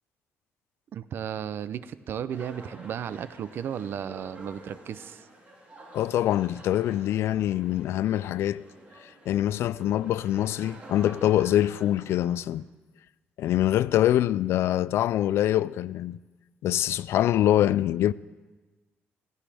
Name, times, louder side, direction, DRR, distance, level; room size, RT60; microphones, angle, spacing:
voice 1, 0.9-5.3, right 9 dB, 55° right, 0.5 m, -34 dB
sound 1, 2.3-12.5, right 1 dB, 30° right, 3.4 m, -49 dB
voice 2, 5.9-8.7 9.3-12.6 13.4-16.2 16.6-18.1, left 12 dB, 75° left, 0.3 m, -24 dB
17.0 x 16.0 x 3.4 m
cardioid pair, 135°, 4 cm